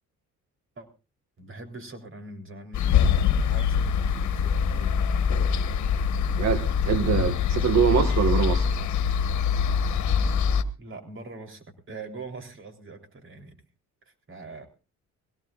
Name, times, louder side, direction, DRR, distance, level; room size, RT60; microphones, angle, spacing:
voice 1, 1.4-5.1 8.3-8.6 10.8-13.6 14.1-14.7, right 3 dB, 40° right, 5 dB, 3.6 m, -43 dB
sound 1, 2.7-10.6, left 7 dB, 70° left, 1.3 m, -24 dB
voice 2, 6.4-8.7, right 8 dB, 65° right, 7 dB, 1.6 m, -24 dB
22.0 x 17.5 x 2.5 m, 0.31 s
cardioid pair, 90°, 30 cm